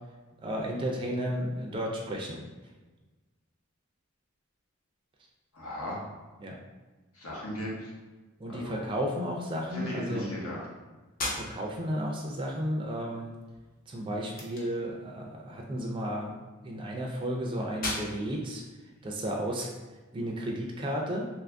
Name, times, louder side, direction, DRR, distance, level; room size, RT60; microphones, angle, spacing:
voice 1, 0.4-2.4 6.4-6.6 8.4-10.3 11.3-13.3 13.9-16.3 16.6-18.6 19.0-19.7 20.1-21.3, equal, 25° right, -1 dB, 0.3 m, -33 dB
voice 2, 5.5-6.0 7.1-7.9 8.5-8.8 9.7-10.7, equal, 90° left, -4 dB, 1.0 m, -36 dB
sound 1, 11.0-20.0, left 2 dB, 40° left, 0.6 m, -42 dB
2.7 x 2.5 x 3.4 m, 1.2 s
head